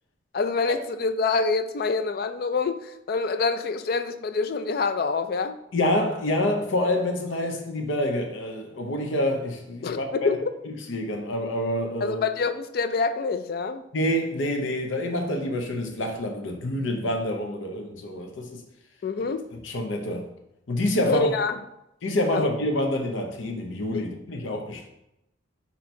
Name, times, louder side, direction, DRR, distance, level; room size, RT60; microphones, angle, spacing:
voice 1, 0.3-5.6 9.8-10.5 12.0-13.8 19.0-19.4 21.1-21.6 22.3-22.5 23.9-24.0, left 4 dB, 50° left, 0.3 m, -26 dB
voice 2, 5.7-10.3 10.9-12.2 13.9-18.6 19.6-20.2 20.7-21.3 22.0-24.9, left 1 dB, 85° left, 0.7 m, -27 dB
4.2 x 2.8 x 4.4 m
head